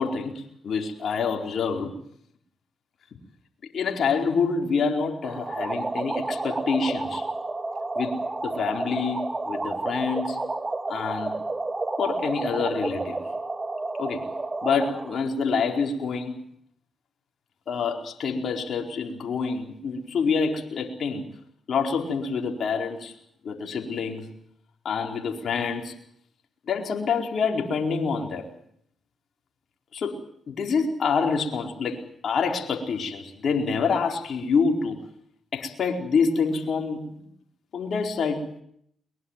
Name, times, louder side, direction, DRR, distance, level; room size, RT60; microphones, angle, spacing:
voice 1, 0.0-2.0 3.7-7.2 7.9-8.2 8.4-9.2 9.5-10.4 10.9-11.3 12.0-13.2 14.0-14.3 14.6-16.3 17.7-21.3 21.7-23.1 23.4-24.3 24.8-25.9 26.7-28.5 29.9-30.2 30.5-32.0 32.2-35.0 35.5-37.0 37.7-38.5, left 5 dB, 65° left, 2 dB, 4.6 m, -26 dB
sound 1, 5.2-15.2, right 2 dB, 30° right, 2.3 m, -30 dB
22.5 x 22.0 x 7.5 m, 0.68 s
supercardioid pair, 50°, 0 cm